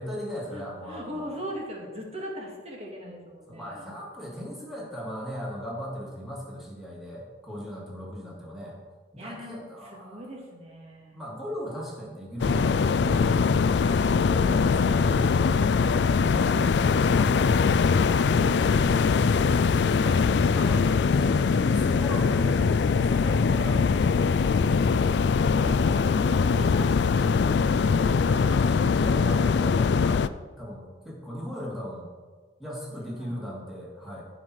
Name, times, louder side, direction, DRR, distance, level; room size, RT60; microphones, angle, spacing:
voice 1, 0.0-1.4 3.5-8.8 9.1-10.2 11.1-13.6 20.6-20.8 21.1-23.8 28.3-30.3 30.6-32.1 32.6-34.2, equal, ahead, -6 dB, 2.6 m, -38 dB
voice 2, 0.5-3.9 9.2-11.2 14.0-15.0 16.9-17.3 19.8-20.8 25.3-28.3 32.9-33.4, equal, 35° right, -1 dB, 2.2 m, -41 dB
sound 1, 12.4-30.3, left 5 dB, 65° left, 0.3 m, -22 dB
15.0 x 5.8 x 4.8 m, 1.4 s
head